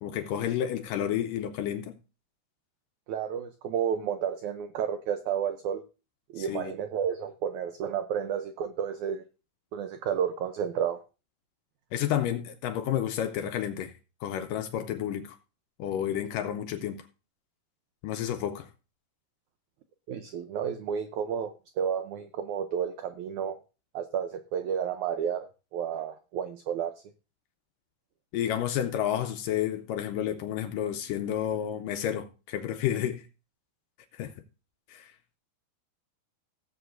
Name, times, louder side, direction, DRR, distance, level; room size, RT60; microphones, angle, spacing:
voice 1, 0.0-2.0 6.4-6.7 11.9-13.9 14.2-15.4 15.8-17.0 18.0-18.7 28.3-33.3 34.1-34.3 34.9-35.1, left 10 dB, 80° left, 2.1 m, -30 dB
voice 2, 3.1-5.8 6.3-9.2 9.7-11.0 20.1-23.6 23.9-26.9, right 8 dB, 85° right, 1.7 m, -31 dB
17.5 x 8.0 x 2.6 m
omnidirectional pair, 4.4 m